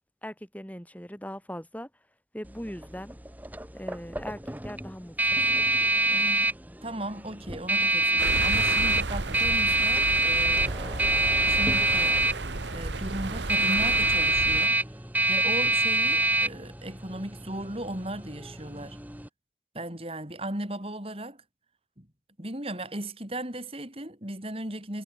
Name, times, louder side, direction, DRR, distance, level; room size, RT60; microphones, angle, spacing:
voice 1, 0.2-1.9 2.3-3.2 3.7-5.1, equal, 10° left, 7.3 m, -39 dB
sound 1, 2.5-19.3, right 2 dB, 10° right, 1.6 m, -26 dB
voice 2, 6.1-6.6 6.8-11.0 11.5-12.2 12.7-14.8 15.3-19.0 19.7-21.4 22.0-22.1 22.4-25.0, right 1 dB, 30° right, 4.1 m, -37 dB
sound 2, 8.2-14.7, right 2 dB, 75° right, 1.6 m, -33 dB
head